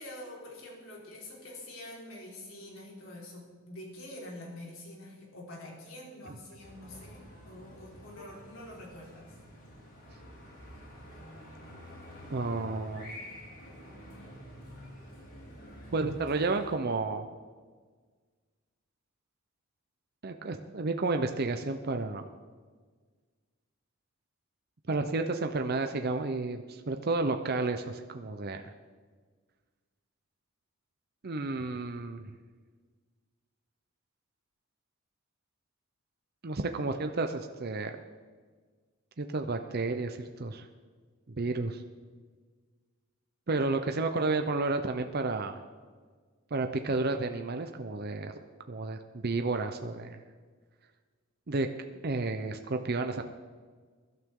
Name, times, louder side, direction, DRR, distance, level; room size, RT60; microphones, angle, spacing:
voice 1, 0.0-9.4, left 1 dB, 85° left, -3 dB, 4.5 m, -46 dB
sound 1, 6.6-16.7, equal, 70° left, 4.3 m, -48 dB
voice 2, 12.3-13.1 15.9-17.3 20.2-22.3 24.9-28.6 31.2-32.3 36.4-38.0 39.2-40.7 41.3-41.8 43.5-45.6 46.5-48.3 48.7-50.2 51.5-51.7 52.0-53.2, right 3 dB, 50° right, 6 dB, 0.7 m, -31 dB
22.5 x 12.0 x 3.8 m, 1.5 s
head